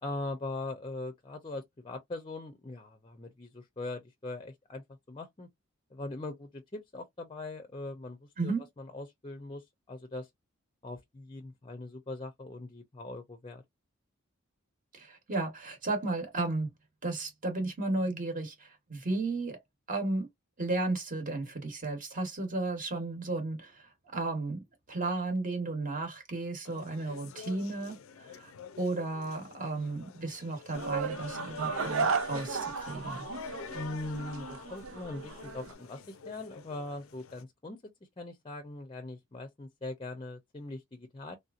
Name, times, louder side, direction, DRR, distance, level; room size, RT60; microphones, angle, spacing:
voice 1, 0.0-5.5 5.9-10.3 10.8-13.6 33.7-37.9 38.2-41.4, left 2 dB, 25° left, 0.5 m, -41 dB
voice 2, 8.4-8.7 14.9-16.7 17.0-19.6 19.9-20.3 20.6-24.6 24.9-28.5 28.8-33.3, right 2 dB, 40° right, 1.1 m, -34 dB
sound 1, 26.6-37.4, left 5 dB, 75° left, 0.5 m, -46 dB
sound 2, 30.7-35.7, right 5 dB, 80° right, 0.6 m, -35 dB
3.4 x 2.8 x 2.4 m
head